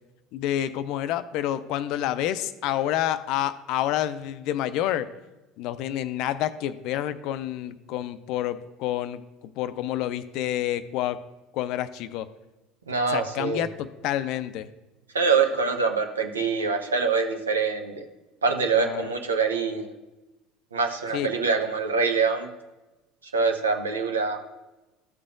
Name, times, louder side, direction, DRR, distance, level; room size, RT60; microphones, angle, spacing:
voice 1, 0.3-5.1 5.6-11.2 11.5-12.3 13.1-14.7 18.7-19.1 21.1-21.3, left 12 dB, 55° left, 13 dB, 0.4 m, -28 dB
voice 2, 12.9-13.7 15.1-18.0 18.4-19.9 20.7-22.5 23.3-24.4, right 5 dB, 80° right, 5 dB, 0.7 m, -24 dB
13.5 x 6.7 x 2.5 m, 1.1 s
figure-of-eight pair, 65°, 0 cm